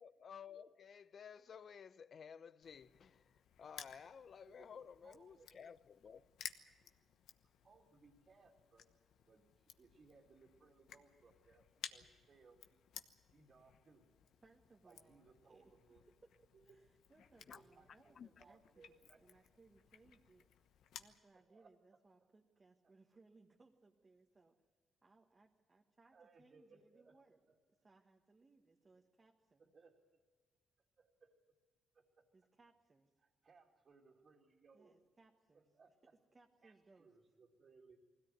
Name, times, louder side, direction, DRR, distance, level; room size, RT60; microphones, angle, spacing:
voice 1, 0.0-6.2 17.5-17.6 18.2-18.3, left 7 dB, 50° left, 0.7 m, -55 dB
Crushing, 2.6-21.2, left 9 dB, 75° left, 1.1 m, -57 dB
voice 2, 4.4-5.6 6.8-6.9 7.4-8.9 9.3-12.8 13.3-14.0 14.8-16.0 16.5-16.8 17.4-19.5 21.3-21.7 22.8-22.9 26.1-27.2 27.5-27.6 29.6-29.9 31.0-31.4 31.9-32.2 33.2-34.9 35.5-36.0 36.6-38.0, right 4 dB, 45° right, 2.7 m, -67 dB
voice 3, 14.4-15.7 16.4-24.5 25.0-27.4 27.8-29.7 32.3-33.1 34.7-35.7 36.3-37.1, right 3 dB, 30° right, 1.5 m, -68 dB
21.0 x 16.5 x 9.4 m
cardioid pair, 90°, 0 cm